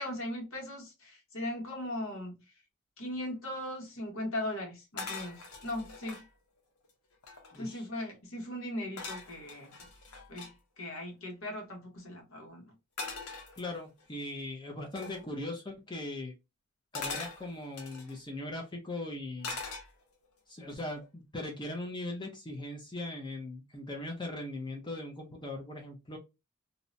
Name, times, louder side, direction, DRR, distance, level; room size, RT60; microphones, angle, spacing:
voice 1, 0.0-2.4 3.0-6.2 7.6-9.7 10.3-10.5 10.8-12.7, left 1 dB, 70° left, 1.1 m, -38 dB
sound 1, 5.0-6.3 6.8-6.9 7.1-7.8 9.0-10.5 13.0-14.0 15.0-15.2 16.9-18.2 19.4-20.3 20.7-21.0, left 4 dB, 85° left, 0.7 m, -42 dB
voice 2, 7.5-7.9 13.6-16.3 16.9-19.6 20.5-26.2, left 2 dB, 20° left, 0.5 m, -39 dB
2.7 x 2.1 x 2.5 m
head